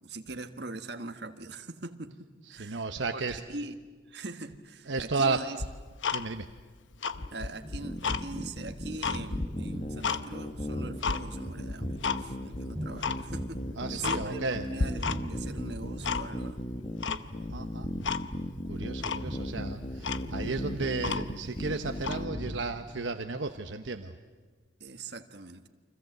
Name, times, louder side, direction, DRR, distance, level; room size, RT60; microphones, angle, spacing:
voice 1, 0.0-3.7 4.1-5.6 7.3-16.6 24.8-25.7, right 3 dB, 60° right, 7 dB, 1.6 m, -42 dB
voice 2, 2.5-3.4 4.9-5.4 6.1-6.5 13.8-14.6 17.5-17.9 18.7-24.2, right 3 dB, 80° right, 7 dB, 1.0 m, -33 dB
Tick-tock, 5.6-6.6 6.9-8.2 8.7-10.2 10.6-11.2 11.7-12.2 12.5-12.6 13.0-13.2 13.6-13.7 14.0-14.5 14.8-15.4 15.7-16.5 17.0-17.6 18.0-18.2 18.6-18.7 19.0-19.3 19.7-19.8 20.0-21.5 22.0-22.2, left 5 dB, 85° left, 0.9 m, -32 dB
sound 1, 7.1-13.0 13.3-14.5 14.8-16.4 16.7-16.9 17.2-17.4 17.9-18.2 18.7-22.1 22.3-22.5, equal, 5° left, 5.7 m, -42 dB
sound 2, 7.8-22.6, equal, 30° left, 1.6 m, -37 dB
29.5 x 25.0 x 8.0 m, 1.4 s
head